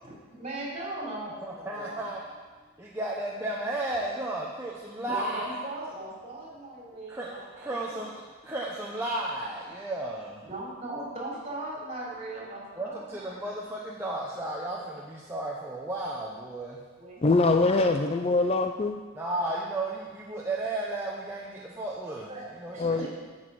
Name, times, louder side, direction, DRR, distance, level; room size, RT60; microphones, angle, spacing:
voice 1, 0.0-2.0 5.0-8.1 10.4-13.4 17.0-17.6 22.3-23.1, right 1 dB, 30° right, -4 dB, 3.6 m, -39 dB
voice 2, 1.4-2.2 2.8-5.6 7.1-7.3 7.6-10.5 12.7-16.8 19.2-23.0, right 2 dB, 10° right, -5 dB, 0.9 m, -34 dB
voice 3, 17.2-19.0 22.8-23.1, left 3 dB, 30° left, 6 dB, 0.4 m, -23 dB
10.5 x 6.3 x 7.7 m, 1.4 s
head